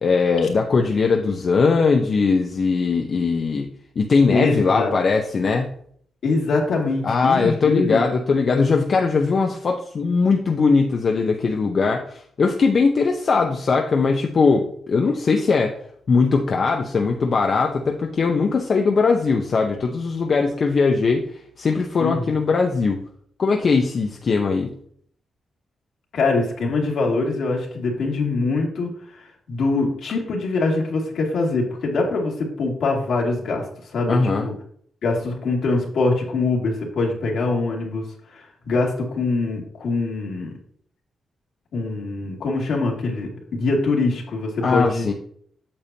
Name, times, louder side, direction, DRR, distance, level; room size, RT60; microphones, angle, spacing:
voice 1, 0.0-3.7 4.0-5.7 7.0-15.7 16.1-21.3 21.6-23.0 23.4-24.7 34.1-34.5 44.6-45.1, left 4 dB, 55° left, 2 dB, 0.8 m, -20 dB
voice 2, 4.3-4.9 6.2-8.0 22.0-22.2 26.1-33.6 33.9-34.5 35.0-38.0 38.3-40.5 41.7-45.1, left 3 dB, 75° left, -1 dB, 2.3 m, -23 dB
8.6 x 6.8 x 2.8 m, 0.62 s
cardioid pair, 75°, 0 cm